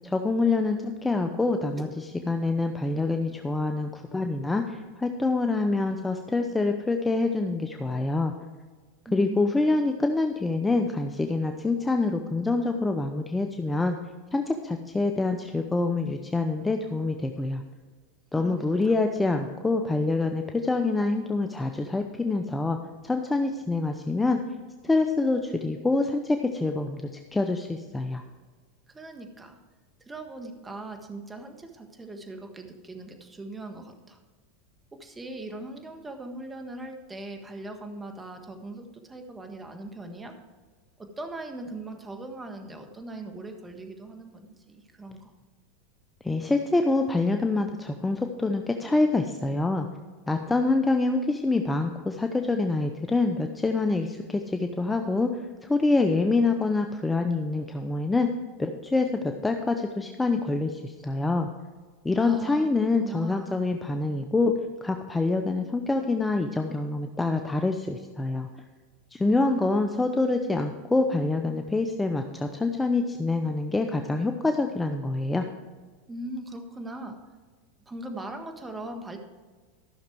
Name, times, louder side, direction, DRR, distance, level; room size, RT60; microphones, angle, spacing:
voice 1, 0.0-8.3 9.1-14.0 14.3-17.6 18.3-22.8 23.0-24.4 24.8-28.2 46.2-49.9 50.3-55.3 55.6-58.3 58.6-61.5 62.0-64.5 64.8-68.5 69.1-75.4, left 3 dB, 10° left, 5 dB, 0.7 m, -26 dB
voice 2, 1.8-2.2 9.0-9.6 18.3-18.9 28.9-29.6 30.0-34.2 34.9-40.3 41.0-45.3 62.2-63.6 69.2-69.6 76.1-77.2 77.8-79.2, right 2 dB, 15° right, 4 dB, 1.6 m, -40 dB
14.0 x 6.4 x 4.7 m, 1.4 s
hypercardioid pair, 100°, 0 cm